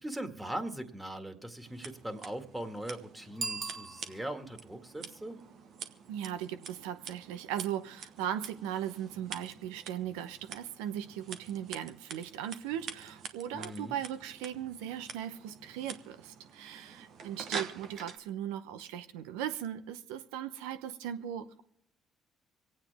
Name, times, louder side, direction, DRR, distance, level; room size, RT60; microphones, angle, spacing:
voice 1, 0.0-5.4 13.5-14.0, right 1 dB, 15° right, 6 dB, 2.0 m, -40 dB
Scissors, 1.6-18.2, right 6 dB, 65° right, 1.0 m, -46 dB
Bicycle bell, 3.3-4.6, right 4 dB, 45° right, 1.4 m, -39 dB
voice 2, 6.1-21.6, right 10 dB, 80° right, 10 dB, 0.8 m, -38 dB
26.0 x 8.9 x 3.5 m, 0.75 s
hypercardioid pair, 55°, 0 cm